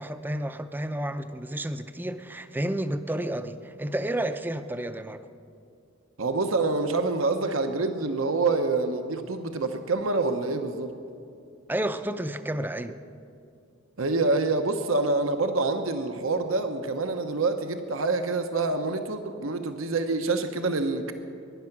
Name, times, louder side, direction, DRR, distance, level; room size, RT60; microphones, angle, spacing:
voice 1, 0.0-5.2 11.7-13.0, right 1 dB, 10° right, 10 dB, 0.5 m, -31 dB
voice 2, 6.2-10.9 14.0-21.1, right 3 dB, 80° right, 7 dB, 1.0 m, -26 dB
21.5 x 11.0 x 5.9 m, 2.4 s
head